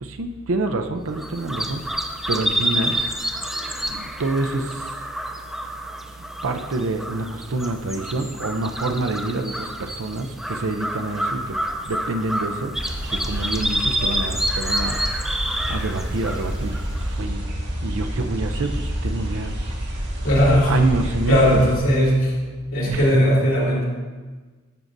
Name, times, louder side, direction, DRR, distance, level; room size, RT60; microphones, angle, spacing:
voice 1, 0.0-1.9 2.3-3.1 3.4-4.9 6.2-11.6 11.8-12.7 13.1-15.0 15.7-17.4 17.8-19.5 20.7-21.7 22.8-23.2, right 2 dB, 75° right, 6 dB, 0.6 m, -27 dB
sound 1, 1.1-17.2, right 1 dB, ahead, 0.5 m, -28 dB
sound 2, 12.8-21.8, equal, 55° right, 1.5 m, -28 dB
voice 2, 20.2-20.7 21.3-22.3 22.7-23.8, equal, 75° left, -4 dB, 2.6 m, -18 dB
11.0 x 7.3 x 2.6 m, 1.4 s
head